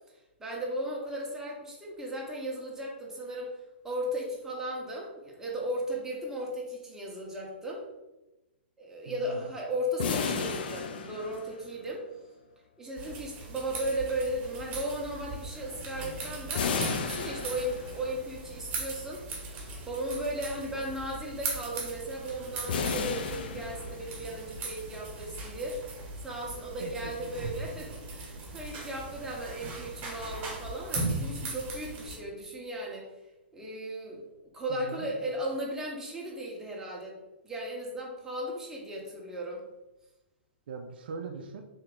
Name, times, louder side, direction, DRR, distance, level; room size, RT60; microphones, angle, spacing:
voice 1, 0.4-3.5 3.8-7.8 8.8-12.0 12.8-19.2 19.9-25.8 26.2-33.1 33.5-34.2 34.5-37.2 37.4-39.6, right 1 dB, 5° right, -3 dB, 1.0 m, -36 dB
voice 2, 9.1-9.4 26.8-27.3 34.7-35.3 40.7-41.6, right 4 dB, 60° right, 4 dB, 0.4 m, -41 dB
sound 1, 10.0-11.9 16.6-18.2 22.7-24.3, left 5 dB, 55° left, 0.4 m, -33 dB
sound 2, 13.0-32.2, right 3 dB, 30° right, 1.3 m, -39 dB
3.4 x 2.8 x 3.6 m, 1.0 s
figure-of-eight pair, 115°, 6 cm